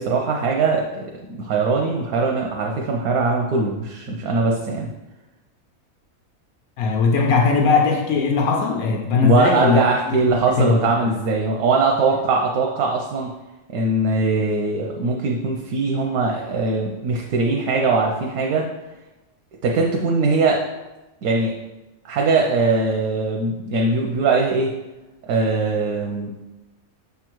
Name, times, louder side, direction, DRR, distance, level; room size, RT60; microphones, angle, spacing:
voice 1, 0.0-4.9 9.2-13.3 13.7-18.7 19.6-20.6 21.2-21.5 22.0-24.7 25.3-26.3, right 3 dB, 90° right, 0 dB, 1.2 m, -21 dB
voice 2, 6.8-9.8 10.1-10.9, left 5 dB, 80° left, 1 dB, 1.2 m, -19 dB
6.7 x 3.6 x 4.5 m, 1.1 s
omnidirectional pair, 1.5 m